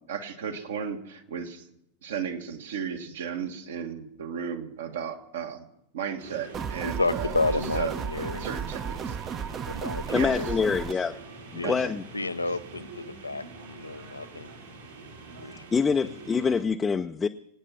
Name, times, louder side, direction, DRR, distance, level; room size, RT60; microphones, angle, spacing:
voice 1, 0.0-1.7 2.0-5.7 5.9-9.2 10.1-10.4 11.6-11.9, right 7 dB, 60° right, 6 dB, 1.5 m, -35 dB
sound 1, 6.2-16.6, right 3 dB, 80° right, 4.0 m, -45 dB
sound 2, 6.5-10.9, right 7 dB, 25° right, 0.7 m, -34 dB
voice 2, 6.8-8.5 9.7-10.7 11.6-11.8 12.1-14.5 15.4-15.6, left 3 dB, 80° left, 14 dB, 0.5 m, -31 dB
voice 3, 10.1-11.2 11.5-12.0 15.7-17.3, left 5 dB, 15° left, 6 dB, 0.5 m, -25 dB
24.5 x 9.0 x 5.8 m, 0.82 s
figure-of-eight pair, 90°, 0 cm